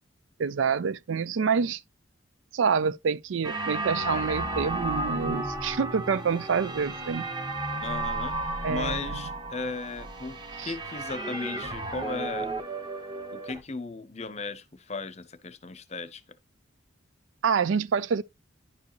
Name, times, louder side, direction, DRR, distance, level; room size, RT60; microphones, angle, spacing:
voice 1, 0.4-1.8 2.5-7.2 8.6-9.2 10.6-10.7 17.4-18.2, right 6 dB, 80° right, 0.4 m, -27 dB
sound 1, 3.4-13.6, right 2 dB, 25° right, 1.1 m, -33 dB
voice 2, 7.8-8.4 8.7-12.5 13.3-16.2, left 3 dB, 35° left, 0.7 m, -36 dB
10.5 x 4.7 x 3.0 m
head